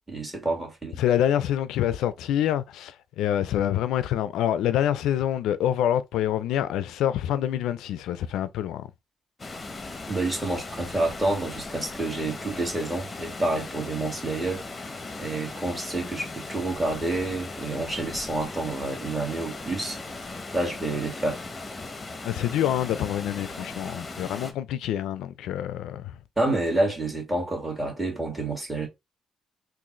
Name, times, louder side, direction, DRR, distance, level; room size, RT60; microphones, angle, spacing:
voice 1, 0.1-1.0 10.1-20.0 20.5-21.4 26.4-28.9, right 2 dB, 15° right, 1.9 m, -28 dB
voice 2, 1.0-8.9 22.2-26.2, left 11 dB, 85° left, 0.3 m, -26 dB
Water, 9.4-24.5, left 3 dB, 25° left, 0.7 m, -38 dB
3.8 x 2.4 x 3.0 m
cardioid pair, 90°, 0 cm